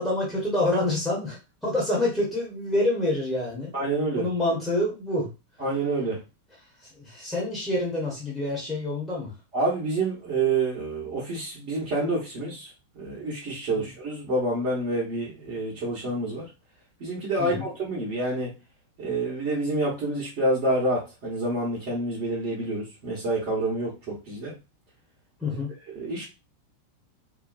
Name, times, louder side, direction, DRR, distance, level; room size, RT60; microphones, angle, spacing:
voice 1, 0.0-3.7 4.1-5.3 7.0-9.3 13.8-13.9 17.4-17.6 25.4-25.7, left 1 dB, 5° left, -4 dB, 1.0 m, -27 dB
voice 2, 3.7-4.3 5.6-6.2 9.5-12.7 12.9-16.5 17.0-18.5 19.0-24.5 25.9-26.2, right 2 dB, 40° right, -7 dB, 1.1 m, -28 dB
2.8 x 2.2 x 2.3 m, 0.28 s
figure-of-eight pair, 90°, 0 cm